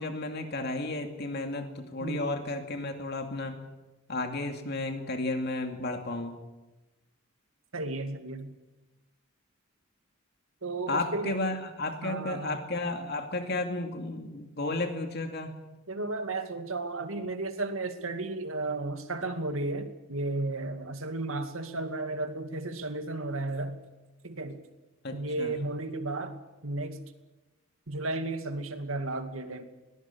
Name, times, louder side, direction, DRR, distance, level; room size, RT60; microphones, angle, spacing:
voice 1, 0.0-3.6 4.1-6.4 10.9-15.5 25.0-25.6, left 2 dB, 50° left, 5 dB, 2.5 m, -33 dB
voice 2, 2.0-2.3 7.7-8.5 10.6-11.4 12.0-12.6 15.9-23.8 24.2-24.6 25.1-27.1 27.9-29.6, right 2 dB, 75° right, 7 dB, 2.4 m, -34 dB
23.0 x 19.0 x 8.5 m, 1.1 s
head